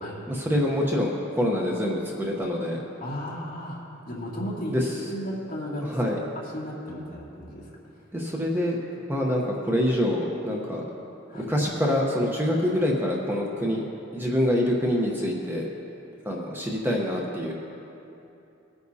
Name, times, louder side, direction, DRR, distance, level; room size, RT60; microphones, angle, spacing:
voice 1, 0.3-2.8 4.7-4.8 5.9-6.2 8.1-8.8 9.1-10.8 11.3-13.8 14.1-15.7 16.2-17.5, left 1 dB, 10° right, -2 dB, 0.9 m, -25 dB
voice 2, 3.0-4.8 5.1-6.0 6.3-7.7 11.3-11.5, equal, 45° left, -6 dB, 2.4 m, -35 dB
19.5 x 9.5 x 2.8 m, 2.8 s
head